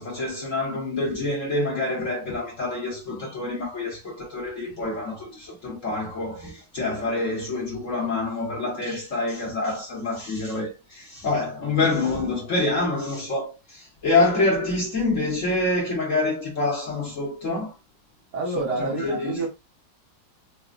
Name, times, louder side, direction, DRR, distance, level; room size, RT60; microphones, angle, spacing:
voice 1, 0.0-17.8 18.8-19.4, left 2 dB, 45° left, 1.2 m, -26 dB
voice 2, 18.3-19.5, right 2 dB, 60° right, 1.7 m, -27 dB
4.2 x 2.2 x 2.4 m
omnidirectional pair, 2.1 m